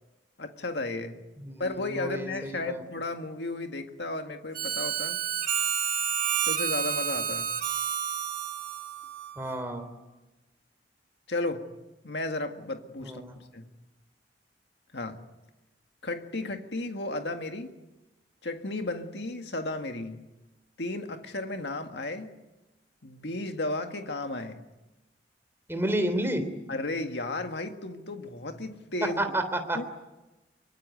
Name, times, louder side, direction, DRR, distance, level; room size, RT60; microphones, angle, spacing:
voice 1, 0.4-1.2 1.6-5.2 6.5-7.5 11.3-11.8 12.0-13.7 14.9-15.3 16.0-17.7 18.4-20.3 20.8-22.4 23.0-24.7 26.7-29.3 29.7-29.8, left 2 dB, 70° left, 1.9 m, -34 dB
voice 2, 1.4-2.8 9.4-9.9 13.0-13.4 25.7-26.4 29.2-29.8, right 1 dB, 15° right, 3.4 m, -31 dB
Harmonica, 4.5-9.7, right 8 dB, 55° right, 2.6 m, -30 dB
24.5 x 24.5 x 9.2 m
head